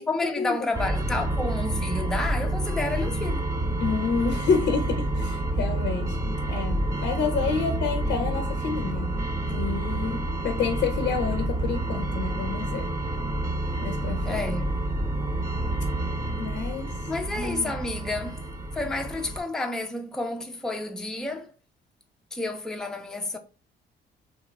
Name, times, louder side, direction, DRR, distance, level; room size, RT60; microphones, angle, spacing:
voice 1, 0.0-3.4 14.2-14.7 17.1-18.4 18.7-21.5 22.3-23.4, left 2 dB, 5° left, 0.4 m, -30 dB
sound 1, 0.7-19.4, right 1 dB, 15° right, 0.8 m, -29 dB
voice 2, 3.8-6.2 6.5-9.2 9.5-12.9 13.8-14.3 16.4-17.0 17.4-17.7, left 5 dB, 65° left, 0.5 m, -29 dB
2.8 x 2.3 x 3.2 m
cardioid pair, 90°, 20 cm